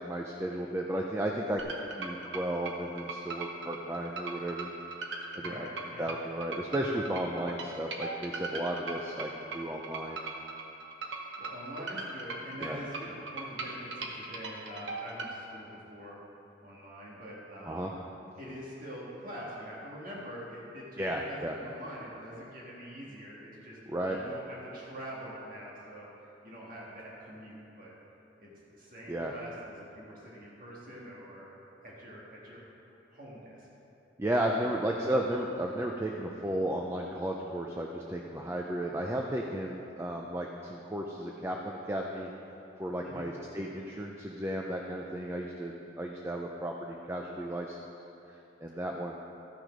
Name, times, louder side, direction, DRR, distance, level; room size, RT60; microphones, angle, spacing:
voice 1, 0.0-1.6 2.0-4.7 5.4-5.7 6.0-10.2 12.6-12.8 17.7-17.9 21.0-21.5 23.9-24.2 29.1-29.3 34.2-42.3 42.8-47.8 48.6-49.2, right 1 dB, 15° right, 0 dB, 0.5 m, -34 dB
sound 1, 1.6-15.3, right 3 dB, 65° right, 1.0 m, -39 dB
voice 2, 5.4-6.1 11.4-16.2 16.6-17.9 18.4-23.8 24.1-27.9 28.4-31.5 31.8-32.6 33.1-33.7 34.5-34.7 43.0-43.3, equal, 45° right, -5 dB, 1.7 m, -45 dB
13.5 x 6.4 x 5.1 m, 2.9 s
head